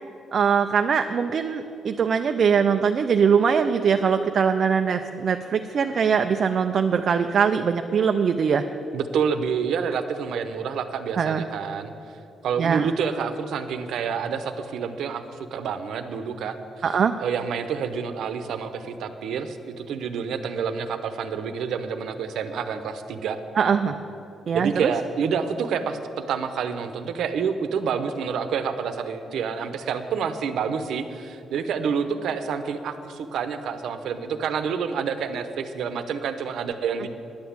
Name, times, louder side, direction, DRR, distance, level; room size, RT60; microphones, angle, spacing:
voice 1, 0.3-8.6 11.2-11.4 12.6-12.9 16.8-17.1 23.6-23.9 24.5-24.9, right 6 dB, 45° right, 6 dB, 0.4 m, -22 dB
voice 2, 8.9-12.2 12.4-23.4 24.5-37.1, right 6 dB, 70° right, 9 dB, 0.8 m, -28 dB
10.5 x 8.1 x 8.6 m, 2.8 s
cardioid pair, 155°, 0 cm